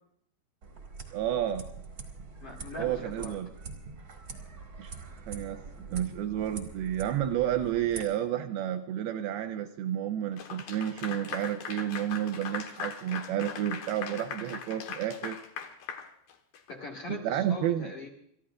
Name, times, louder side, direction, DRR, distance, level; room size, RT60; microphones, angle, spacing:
sound 1, 0.6-8.0, right 4 dB, 45° right, 1.1 m, -44 dB
voice 1, 1.1-1.7 2.8-3.5 4.8-4.9 5.3-15.4 17.1-17.9, right 11 dB, 80° right, 8 dB, 2.4 m, -31 dB
voice 2, 2.4-3.4 16.7-18.1, left 2 dB, 50° left, 0 dB, 2.0 m, -41 dB
Clapping / Applause, 10.4-16.7, left 7 dB, 65° left, 2.8 m, -40 dB
29.5 x 14.5 x 2.5 m, 0.71 s
omnidirectional pair, 4.9 m